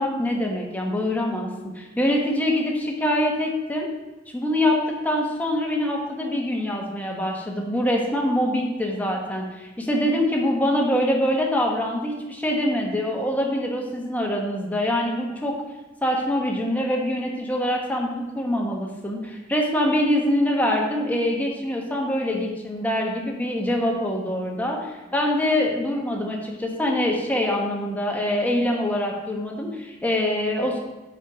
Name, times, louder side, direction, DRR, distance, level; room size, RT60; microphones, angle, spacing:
voice 1, 0.0-3.9 4.3-15.5 16.0-30.8, left 1 dB, 10° left, -1 dB, 1.1 m, -24 dB
7.3 x 5.3 x 4.7 m, 1.1 s
head